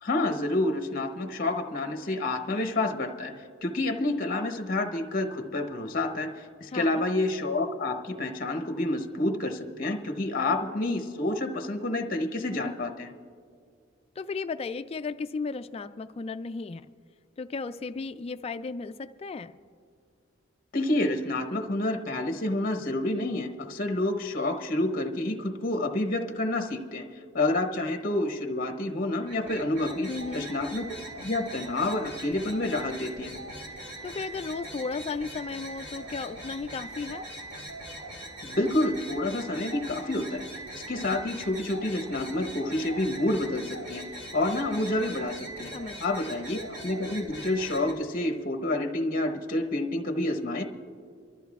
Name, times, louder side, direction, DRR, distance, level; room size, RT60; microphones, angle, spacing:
voice 1, 0.0-13.1 20.7-30.8 31.2-33.3 38.4-40.5 40.7-45.7 46.0-50.6, left 2 dB, 45° left, 6 dB, 0.9 m, -29 dB
voice 2, 6.7-7.0 14.2-16.8 17.4-19.6 30.1-30.5 34.0-37.3 45.7-46.3, left 4 dB, 30° left, 11 dB, 0.3 m, -35 dB
sound 1, 29.2-47.9, right 1 dB, 70° right, 2.4 m, -41 dB
27.5 x 13.0 x 2.3 m, 2.2 s
head